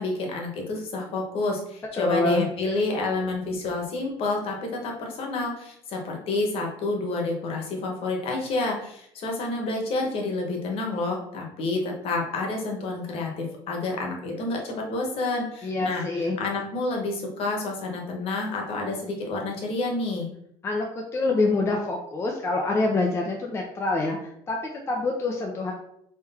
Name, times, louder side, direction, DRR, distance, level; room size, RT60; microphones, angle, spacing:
voice 1, 0.0-16.0 16.4-20.3, left 2 dB, 50° left, 1 dB, 1.2 m, -29 dB
voice 2, 1.9-2.5 15.6-16.4 20.6-20.9 21.1-25.7, left 3 dB, 20° left, 0 dB, 0.5 m, -26 dB
3.8 x 3.1 x 4.2 m, 0.73 s
cardioid pair, 150°, 12 cm